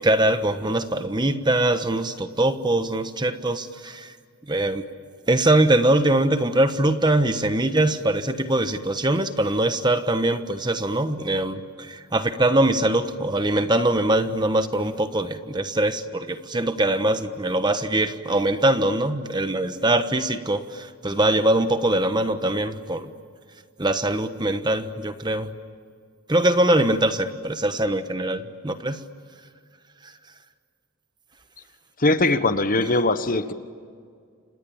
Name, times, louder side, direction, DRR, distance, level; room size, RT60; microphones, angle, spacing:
voice 1, 0.0-4.1 4.5-4.8 5.3-23.1 23.8-25.5 26.3-29.0, right 1 dB, 20° right, 9 dB, 1.2 m, -22 dB
voice 2, 32.0-33.5, left 2 dB, 40° left, 11 dB, 1.2 m, -21 dB
30.0 x 27.5 x 7.2 m, 2.1 s
head